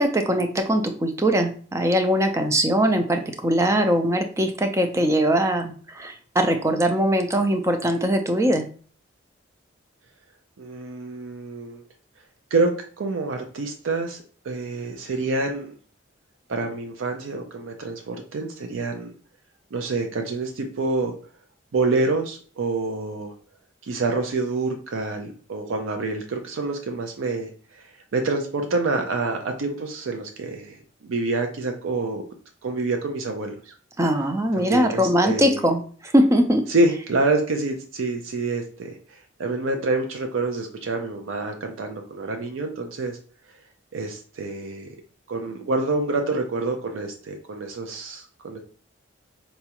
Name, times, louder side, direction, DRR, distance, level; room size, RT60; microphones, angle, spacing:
voice 1, 0.0-8.6 34.0-36.6, equal, 15° right, 6 dB, 0.3 m, -21 dB
voice 2, 10.6-11.8 12.5-15.7 16.5-19.1 19.7-21.1 21.7-23.3 23.8-32.2 32.6-33.7 34.6-35.6 36.7-43.2 43.9-44.9 45.3-48.6, right 3 dB, 80° right, 4 dB, 0.4 m, -27 dB
4.0 x 2.3 x 2.8 m, 0.43 s
head